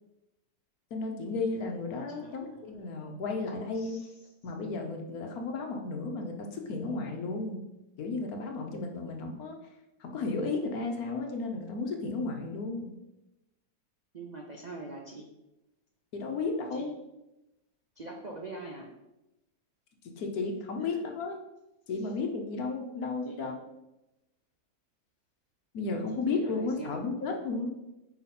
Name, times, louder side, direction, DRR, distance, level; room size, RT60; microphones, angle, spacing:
voice 1, 0.9-4.0 4.4-7.6 8.0-9.6 10.0-12.9 16.1-16.9 20.0-21.4 21.9-23.5 25.7-27.7, left 3 dB, 65° left, 3 dB, 1.3 m, -33 dB
voice 2, 2.1-2.7 3.7-4.1 14.1-15.3 16.7-16.9 18.0-18.9 20.8-21.0 22.0-22.1 23.2-23.6 26.3-27.0, right 3 dB, 65° right, 0 dB, 0.4 m, -44 dB
5.6 x 4.8 x 4.2 m, 0.94 s
omnidirectional pair, 1.8 m